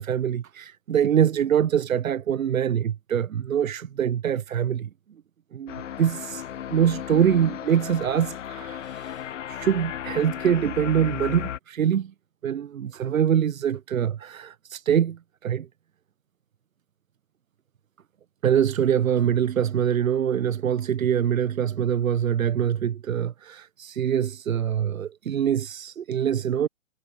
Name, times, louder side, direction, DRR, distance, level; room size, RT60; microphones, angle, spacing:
voice 1, 0.0-4.9 5.5-12.1 12.4-15.7 18.4-26.7, right 9 dB, 90° right, 0.6 m, -24 dB
sound 1, 5.7-11.6, left 10 dB, 70° left, 0.5 m, -35 dB
figure-of-eight pair, 140°, 39 cm